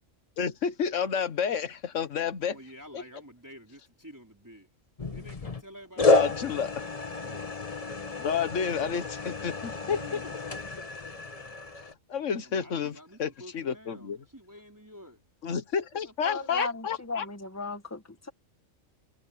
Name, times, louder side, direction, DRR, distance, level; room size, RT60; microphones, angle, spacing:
voice 1, 0.4-2.6 2.9-3.0 6.0-6.7 8.2-10.2 12.1-14.2 15.4-17.3, left 7 dB, 65° left, 1.6 m, -30 dB
voice 2, 2.5-4.7 5.1-7.7 9.6-10.4 12.4-15.2 16.0-16.5, equal, 15° right, 4.1 m, -49 dB
sound 1, 5.0-5.6 6.0-11.9, left 3 dB, 30° left, 1.2 m, -30 dB
voice 3, 16.2-18.3, left 3 dB, 10° left, 1.5 m, -36 dB
omnidirectional pair, 1.4 m